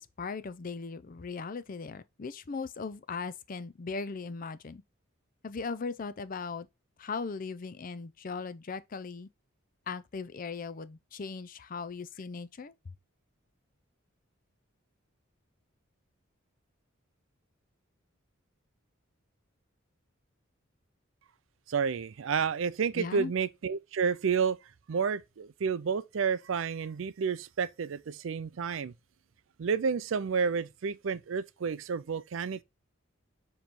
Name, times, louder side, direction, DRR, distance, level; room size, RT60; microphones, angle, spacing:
voice 1, 0.0-4.8 5.4-6.7 7.0-9.3 9.9-12.7 22.9-23.3, left 4 dB, 40° left, 0.5 m, -38 dB
voice 2, 21.7-24.6 24.9-28.9 29.6-32.6, right 6 dB, 70° right, 0.4 m, -30 dB
7.3 x 3.1 x 4.3 m
head